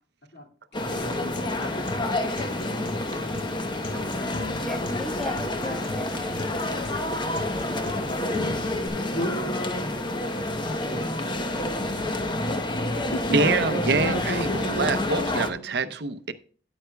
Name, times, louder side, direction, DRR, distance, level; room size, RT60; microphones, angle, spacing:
sound 1, 0.7-15.5, left 1 dB, 25° left, 0.9 m, -28 dB
Acoustic guitar, 0.9-8.9, left 3 dB, 50° left, 2.0 m, -38 dB
voice 1, 4.6-6.5 7.4-8.3 10.5-11.1, equal, ahead, 0.4 m, -38 dB
voice 2, 6.7-7.2 13.3-16.3, right 4 dB, 65° right, 0.6 m, -26 dB
voice 3, 9.1-9.6 12.4-16.0, equal, 70° left, 2.1 m, -34 dB
12.5 x 9.2 x 2.2 m
head